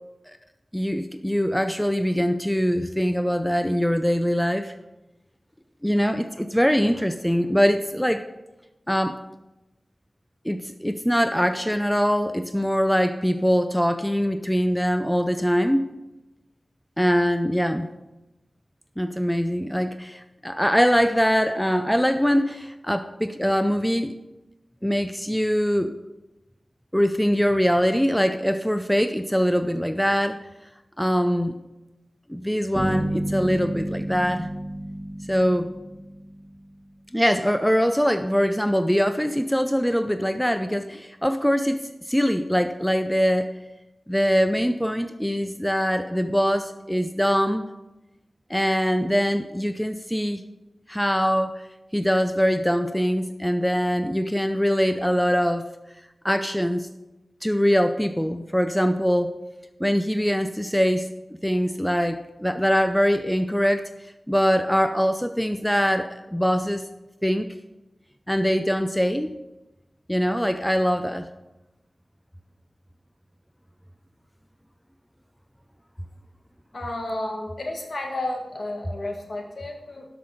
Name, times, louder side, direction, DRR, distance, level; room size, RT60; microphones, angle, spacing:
voice 1, 0.7-4.7 5.8-8.3 8.9-9.2 10.4-15.9 17.0-17.9 19.0-24.2 24.8-25.9 26.9-30.5 31.0-31.5 32.3-34.5 35.3-35.7 37.1-43.5 44.1-47.7 48.5-50.4 50.9-51.5 51.9-55.6 56.2-56.9 57.4-59.3 59.8-61.1 61.4-63.9 64.3-66.8 67.2-67.5 68.3-69.4 70.1-71.3, equal, 5° left, 9 dB, 0.6 m, -23 dB
sound 1, 32.7-36.7, right 1 dB, 20° right, 2.0 m, -30 dB
voice 2, 76.7-80.1, left 1 dB, 60° left, 2 dB, 2.0 m, -32 dB
12.5 x 6.1 x 5.0 m, 0.99 s
wide cardioid pair, 55°, 0 cm